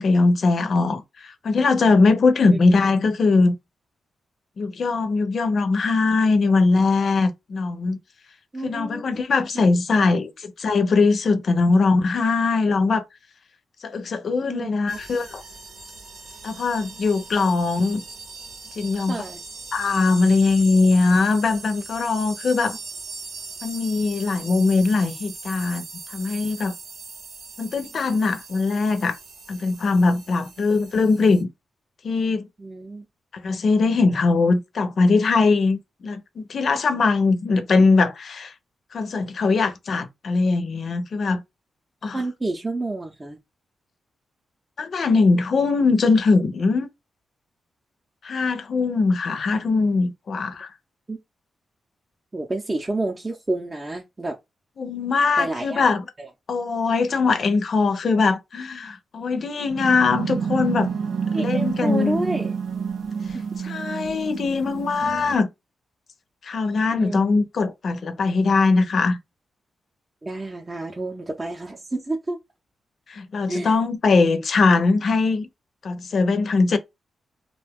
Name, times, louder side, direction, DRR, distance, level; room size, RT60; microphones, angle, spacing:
voice 1, 0.0-3.5 4.6-8.0 8.6-13.1 13.8-15.4 16.4-18.0 18.8-19.2 19.7-22.8 23.6-25.8 26.1-26.7 27.6-29.2 29.5-31.5 32.0-32.5 33.3-38.5 38.9-41.4 42.0-42.2 44.8-46.9 48.2-50.7 54.8-56.0 56.5-60.9 61.3-62.2 63.6-65.5 66.4-69.2 73.1-75.5 75.8-76.8, left 3 dB, 60° left, 0.5 m, -21 dB
voice 2, 8.5-9.1 9.5-9.6 10.0-10.1 14.5-15.0 19.1-19.4 32.6-33.0 39.4-39.7 42.0-43.4 51.1-51.2 52.3-54.4 55.4-55.9 56.2-56.3 61.3-62.5 66.9-67.4 70.2-72.4 73.5-73.8, right 2 dB, 25° right, 0.6 m, -29 dB
sound 1, 14.9-31.4, right 3 dB, 85° right, 1.0 m, -40 dB
sound 2, 59.7-65.3, right 6 dB, 70° right, 0.5 m, -28 dB
2.5 x 2.2 x 3.5 m
cardioid pair, 85°, 0 cm